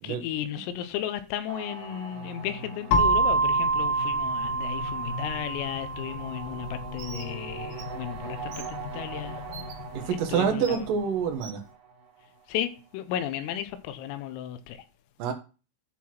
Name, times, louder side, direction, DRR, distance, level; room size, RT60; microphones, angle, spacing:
voice 1, 0.0-10.9 12.5-14.9, left 11 dB, 90° left, 3.6 m, -35 dB
sound 1, 1.5-12.6, right 3 dB, 45° right, 3.8 m, -41 dB
sound 2, 2.9-10.7, right 2 dB, 70° left, 2.5 m, -28 dB
Bird, 7.0-7.3 7.7-7.8 8.5-8.7 9.5-9.7 10.6-10.8 11.4-11.6, right 7 dB, 70° right, 1.9 m, -42 dB
voice 2, 9.9-11.6 15.2-15.3, right 7 dB, 90° right, 1.9 m, -27 dB
11.0 x 4.8 x 5.9 m
omnidirectional pair, 5.9 m